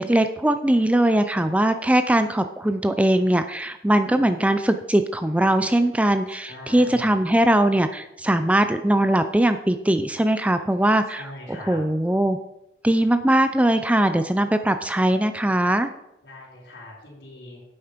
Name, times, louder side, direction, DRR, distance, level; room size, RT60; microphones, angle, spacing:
voice 1, 0.0-12.4 12.8-15.9, right 1 dB, 10° right, 9 dB, 0.4 m, -21 dB
voice 2, 6.5-7.1 11.1-11.8 16.2-17.6, left 1 dB, 70° left, -3 dB, 4.0 m, -41 dB
9.3 x 7.9 x 5.1 m, 0.87 s
head